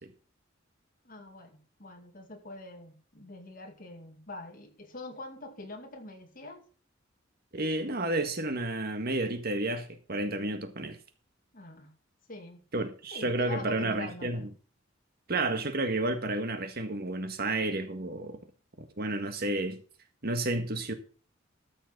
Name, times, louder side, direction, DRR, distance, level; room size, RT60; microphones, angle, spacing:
voice 1, 1.0-6.6 11.5-11.9 12.3-12.6 13.1-14.5 20.5-20.7, left 2 dB, 45° left, 2.4 m, -44 dB
voice 2, 7.5-11.0 12.7-14.5 15.3-18.4 19.0-19.8 20.2-20.9, right 2 dB, 55° right, 1.7 m, -31 dB
13.5 x 6.3 x 5.9 m
head